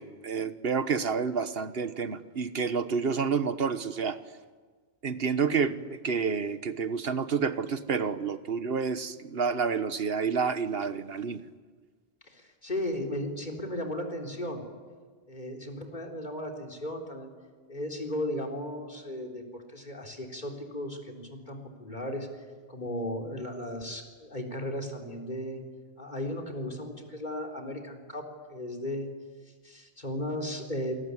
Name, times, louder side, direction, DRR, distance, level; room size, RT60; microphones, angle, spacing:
voice 1, 0.0-4.2 5.0-11.4, right 5 dB, 70° right, 12 dB, 1.4 m, -29 dB
voice 2, 12.2-14.6 15.3-17.3 17.7-22.3 22.7-25.6 26.0-29.1 29.6-31.0, left 1 dB, 45° left, 5 dB, 4.1 m, -35 dB
27.5 x 21.0 x 9.8 m, 1.5 s
omnidirectional pair, 1.1 m